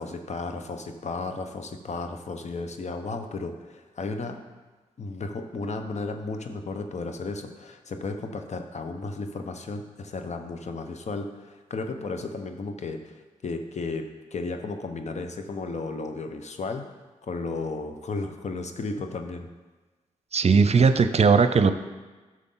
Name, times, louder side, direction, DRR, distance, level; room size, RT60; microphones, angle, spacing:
voice 1, 0.0-4.4 5.0-14.0 14.3-16.8 17.2-19.5, left 3 dB, 55° left, 6 dB, 1.1 m, -34 dB
voice 2, 20.3-21.7, right 5 dB, 50° right, 10 dB, 0.7 m, -18 dB
12.0 x 6.4 x 3.9 m, 1.3 s
supercardioid pair, 45°, 14 cm